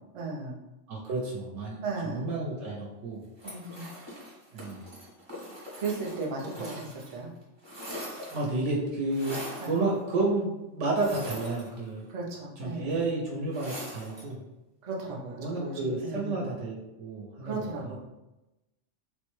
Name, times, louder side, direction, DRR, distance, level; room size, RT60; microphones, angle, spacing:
voice 1, 0.1-0.6 1.8-2.3 3.4-3.9 5.8-7.3 9.6-9.7 12.1-13.0 14.8-16.4 17.4-18.0, right 3 dB, 45° right, -2 dB, 0.4 m, -35 dB
voice 2, 0.9-3.2 4.5-4.9 8.3-12.1 12.6-14.4 15.4-18.0, right 2 dB, 75° right, -2 dB, 0.9 m, -31 dB
sound 1, 3.4-7.2 7.4-8.6 9.1-9.8 10.9-12.1 13.5-14.3, equal, 25° right, 0.8 m, -42 dB
3.3 x 2.1 x 3.0 m, 0.98 s
omnidirectional pair, 1.3 m